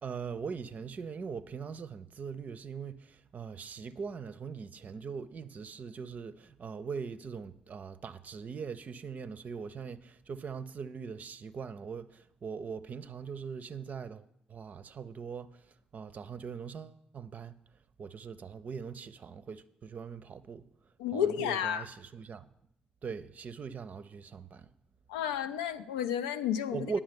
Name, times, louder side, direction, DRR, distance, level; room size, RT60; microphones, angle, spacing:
voice 1, 0.0-14.2 14.5-15.6 15.9-17.6 18.0-20.7 21.1-22.5 23.0-24.7 26.7-27.0, right 6 dB, 45° right, 0.5 m, -41 dB
voice 2, 21.0-21.9 25.1-26.9, left 9 dB, 75° left, 0.4 m, -31 dB
9.5 x 7.2 x 5.2 m
figure-of-eight pair, 45°, 4 cm